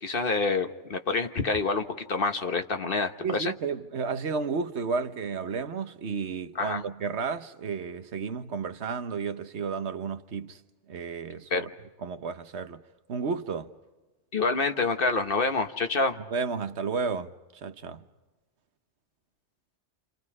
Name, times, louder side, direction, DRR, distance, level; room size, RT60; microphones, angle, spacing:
voice 1, 0.0-3.5 6.5-6.8 11.5-11.7 14.3-16.2, left 3 dB, 55° left, 1.4 m, -27 dB
voice 2, 3.2-10.6 10.9-11.7 12.0-12.8 13.1-13.7 16.3-17.3 17.6-18.0, right 5 dB, 75° right, 1.3 m, -32 dB
29.5 x 28.5 x 4.9 m
omnidirectional pair, 1.2 m